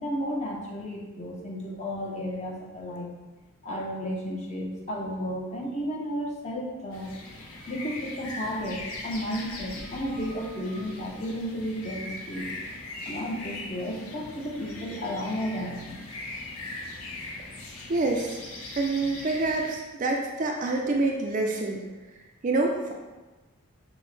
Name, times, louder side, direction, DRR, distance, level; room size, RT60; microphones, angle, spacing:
voice 1, 0.0-3.1 3.6-7.1 7.7-12.5 13.1-16.1, equal, 30° left, -2 dB, 0.6 m, -33 dB
sound 1, 6.9-19.7, left 2 dB, 75° left, 0.7 m, -40 dB
voice 2, 17.9-18.4 18.7-21.8 22.4-22.9, right 2 dB, 35° right, 1 dB, 0.4 m, -26 dB
6.0 x 2.1 x 3.2 m, 1.2 s
head